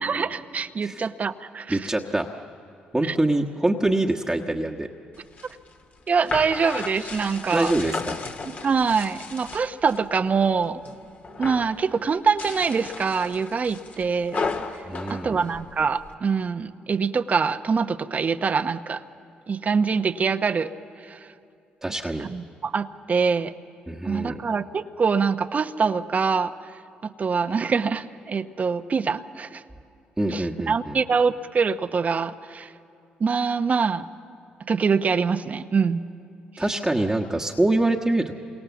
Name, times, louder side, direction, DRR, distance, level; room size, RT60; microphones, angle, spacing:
voice 1, 0.0-1.8 3.0-3.1 6.1-7.7 8.6-10.8 11.4-14.5 15.1-19.0 19.5-20.7 21.1-21.2 22.3-23.5 24.0-26.5 27.2-29.6 30.3-32.7 33.2-34.1 34.7-36.0, right 5 dB, 45° right, 10 dB, 0.9 m, -24 dB
voice 2, 1.7-2.3 2.9-4.9 7.5-8.2 14.9-15.4 21.8-22.3 23.9-24.4 30.2-31.0 36.6-38.3, right 2 dB, 10° right, -1 dB, 1.4 m, -24 dB
sound 1, 5.2-10.0 10.4-11.0 11.2-11.8 12.2-16.1, left 4 dB, 50° left, 2.0 m, -34 dB
28.0 x 24.0 x 7.2 m, 2.6 s
supercardioid pair, 60°, 4 cm